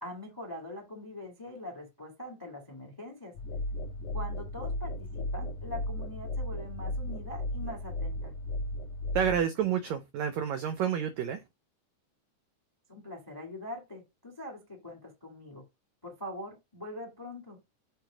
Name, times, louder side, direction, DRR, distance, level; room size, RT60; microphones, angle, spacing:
voice 1, 0.0-3.3 4.1-8.3 12.9-15.6 16.0-17.6, left 1 dB, 15° left, 0.7 m, -43 dB
sound 1, 3.3-9.4, left 1 dB, 80° left, 1.4 m, -35 dB
voice 2, 9.1-11.4, right 8 dB, 90° right, 1.5 m, -29 dB
7.9 x 2.8 x 4.8 m
omnidirectional pair, 3.9 m